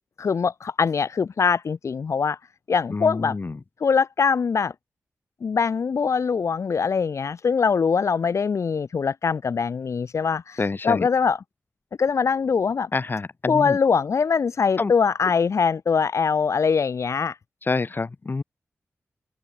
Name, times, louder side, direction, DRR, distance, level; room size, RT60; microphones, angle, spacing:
voice 1, 0.2-2.4 2.7-3.4 3.8-4.7 5.4-11.4 12.0-12.9 13.5-17.4, left 5 dB, 70° left, 2.9 m, -22 dB
voice 2, 2.9-3.5 10.6-11.1 12.9-13.8 14.8-14.9 17.7-18.4, left 3 dB, 40° left, 4.8 m, -27 dB
wide cardioid pair, 95°, 5 cm